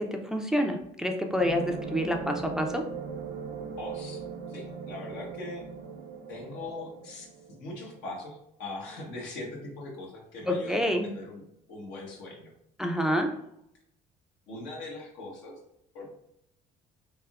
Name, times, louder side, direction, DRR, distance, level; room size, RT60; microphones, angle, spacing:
voice 1, 0.0-2.8 10.5-11.1 12.8-13.3, equal, 5° right, 3 dB, 0.4 m, -28 dB
sound 1, 1.4-7.7, right 5 dB, 65° right, 0.5 m, -39 dB
voice 2, 3.8-5.6 6.3-11.4 11.7-12.5 13.1-13.3 14.5-15.5 15.9-16.1, left 2 dB, 75° left, -1 dB, 1.0 m, -41 dB
3.4 x 2.7 x 2.3 m, 0.76 s
hypercardioid pair, 65°, 19 cm